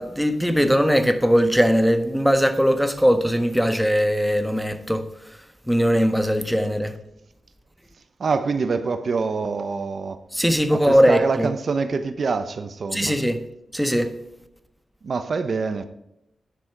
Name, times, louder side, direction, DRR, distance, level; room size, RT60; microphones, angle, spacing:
voice 1, 0.0-5.1 5.7-7.0 10.3-11.5 12.9-13.4 13.7-14.1, equal, ahead, 1.1 m, -20 dB
voice 2, 8.2-10.2 10.7-13.2 15.0-15.8, right 4 dB, 65° right, 0.8 m, -25 dB
10.0 x 6.3 x 4.6 m
cardioid pair, 65°, 0 cm